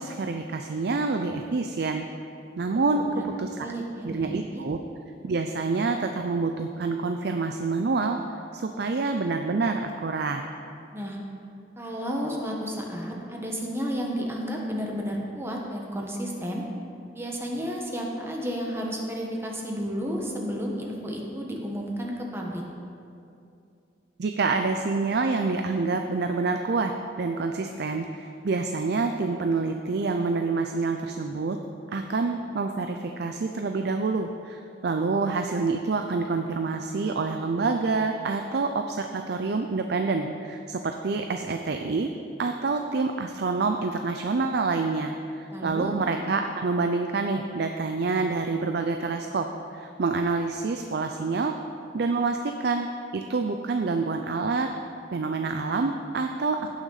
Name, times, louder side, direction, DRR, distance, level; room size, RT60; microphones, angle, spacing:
voice 1, 0.0-2.0 2.6-3.1 3.4-3.7 4.0-4.8 5.2-8.2 8.5-10.4 24.2-26.9 27.2-31.6 31.9-42.1 42.4-49.5 49.7-51.5 51.9-52.9 53.1-54.7 55.1-56.7, right 4 dB, 60° right, 5 dB, 0.5 m, -27 dB
voice 2, 2.9-3.3 3.6-4.6 10.9-11.2 11.8-16.6 17.1-22.6 45.5-45.9, equal, 15° right, -1 dB, 1.3 m, -32 dB
16.5 x 6.3 x 4.0 m, 2.5 s
head